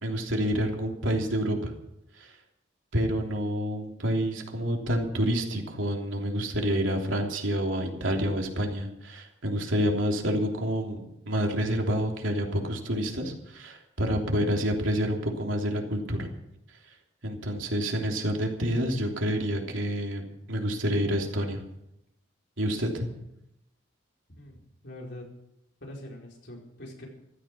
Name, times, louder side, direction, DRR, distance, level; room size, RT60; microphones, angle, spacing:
voice 1, 0.0-1.7 2.2-2.3 2.9-16.3 17.2-21.6 22.6-23.1, equal, 90° right, 1 dB, 3.3 m, -28 dB
voice 2, 24.3-25.3 25.8-27.1, left 1 dB, 60° left, -1 dB, 4.8 m, -44 dB
15.0 x 14.5 x 6.2 m, 0.83 s
head